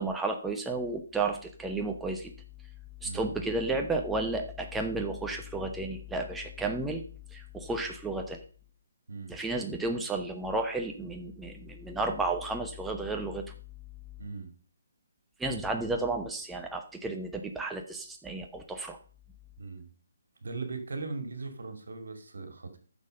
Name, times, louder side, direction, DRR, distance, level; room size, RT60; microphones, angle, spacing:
voice 1, 0.0-2.3 3.0-7.0 7.3-8.4 9.3-13.4 15.4-19.0, right 2 dB, 5° right, 3 dB, 0.9 m, -32 dB
voice 2, 9.1-9.4 14.2-14.5 19.6-19.9 20.4-22.8, right 3 dB, 70° right, 8 dB, 2.3 m, -39 dB
11.0 x 6.6 x 5.3 m, 0.42 s
figure-of-eight pair, 145°, 0 cm